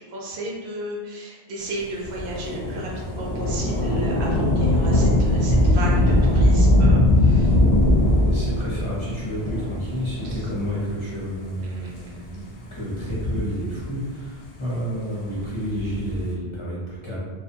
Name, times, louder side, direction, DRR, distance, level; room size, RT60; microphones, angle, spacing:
voice 1, 0.0-7.5 10.2-10.5 11.6-12.1, right 2 dB, 75° right, -2 dB, 0.9 m, -34 dB
Thunder / Rain, 2.0-11.0 11.7-11.8 12.8-14.1 15.6-16.3, left 1 dB, 65° left, 0.7 m, -20 dB
voice 2, 8.3-12.4 12.7-17.2, equal, 35° left, -8 dB, 0.6 m, -30 dB
2.5 x 2.2 x 2.7 m, 1.4 s
omnidirectional pair, 1.1 m